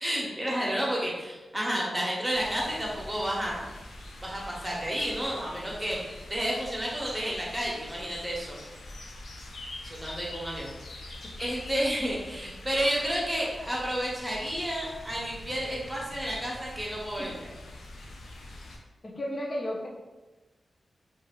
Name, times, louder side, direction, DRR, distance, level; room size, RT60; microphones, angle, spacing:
voice 1, 0.0-3.6 4.2-8.5 9.8-10.7 11.0-11.1 11.4-17.5, equal, 10° right, -4 dB, 0.8 m, -31 dB
sound 1, 2.3-18.8, left 1 dB, 85° left, 0.4 m, -44 dB
voice 2, 19.0-19.9, left 1 dB, 40° left, -2 dB, 0.6 m, -33 dB
2.5 x 2.4 x 3.0 m, 1.1 s
wide cardioid pair, 80°, 0 cm